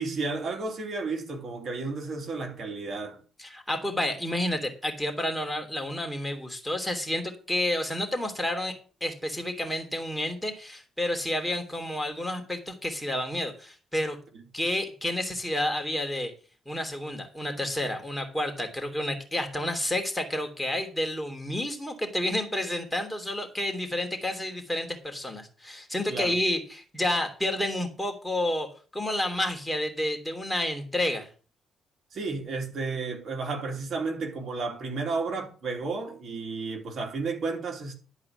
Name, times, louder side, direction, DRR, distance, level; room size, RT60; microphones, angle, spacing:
voice 1, 0.0-3.2 14.3-14.4 26.1-26.4 32.1-37.9, right 3 dB, 55° right, 3.0 m, -32 dB
voice 2, 3.4-8.7 9.0-14.2 14.5-16.3 16.6-31.3, left 1 dB, 5° left, 3.1 m, -30 dB
11.5 x 4.8 x 7.8 m
cardioid pair, 90°, 0 cm